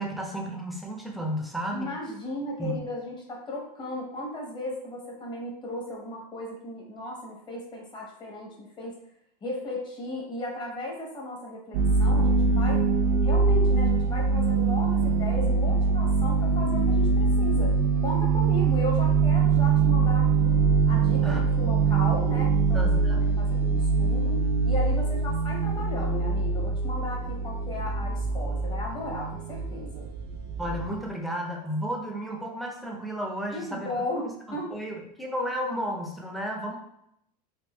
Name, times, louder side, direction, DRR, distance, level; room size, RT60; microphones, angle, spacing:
voice 1, 0.0-1.9 2.6-2.8 21.2-21.4 22.7-23.2 30.6-33.9 34.5-36.8, equal, ahead, 0 dB, 0.6 m, -33 dB
voice 2, 1.7-8.9 9.4-12.9 13.2-20.6 20.9-22.9 23.4-24.4 24.6-30.1 33.5-34.2 34.5-34.7, left 1 dB, 25° left, -1 dB, 1.1 m, -36 dB
sound 1, 11.7-31.1, right 4 dB, 55° right, 0.4 m, -23 dB
3.6 x 2.6 x 3.0 m, 0.77 s
supercardioid pair, 125°, 20 cm